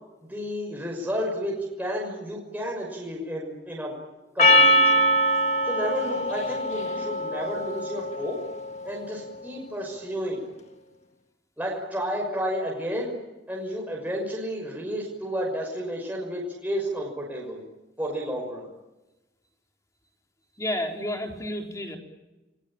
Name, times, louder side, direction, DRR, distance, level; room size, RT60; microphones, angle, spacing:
voice 1, 0.2-4.0 4.3-5.0 5.7-8.4 8.8-10.4 11.6-13.2 13.5-17.6 18.0-18.7, equal, 10° right, -2 dB, 6.0 m, -31 dB
Percussion, 4.4-8.9, equal, 35° left, 2.0 m, -23 dB
voice 2, 20.5-22.0, left 1 dB, 15° left, 2 dB, 4.0 m, -31 dB
29.0 x 22.5 x 9.0 m, 1.1 s
head